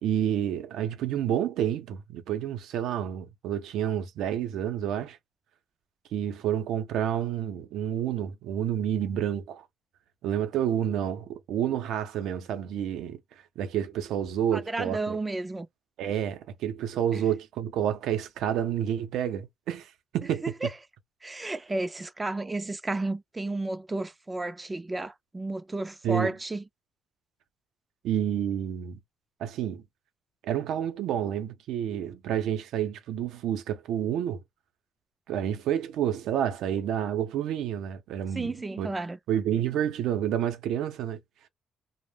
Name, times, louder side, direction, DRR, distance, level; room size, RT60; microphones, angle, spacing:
voice 1, 0.0-5.2 6.1-9.7 10.2-13.2 13.6-15.2 16.0-20.7 26.0-26.3 28.0-29.0 29.4-29.8 30.4-34.4 35.3-38.5 38.8-38.9 39.3-41.2, right 10 dB, 85° right, 0.5 m, -29 dB
voice 2, 14.5-15.7 20.4-20.7 21.2-26.6 38.3-39.2, right 2 dB, 20° right, 0.3 m, -32 dB
2.2 x 2.0 x 3.2 m
cardioid pair, 90°, 0 cm